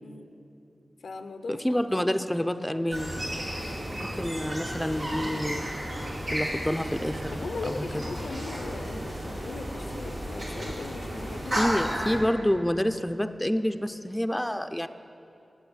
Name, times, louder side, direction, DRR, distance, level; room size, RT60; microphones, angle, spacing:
voice 1, 0.0-0.4 1.0-1.6 2.1-2.3 7.3-11.7, left 3 dB, 90° left, 8 dB, 0.5 m, -39 dB
voice 2, 1.5-3.2 4.0-5.6 6.3-8.0 11.6-14.9, equal, 10° left, 9 dB, 0.5 m, -28 dB
sound 1, 2.9-12.2, equal, 85° right, 2.9 m, -33 dB
8.8 x 7.7 x 8.9 m, 2.8 s
cardioid pair, 40°, 0 cm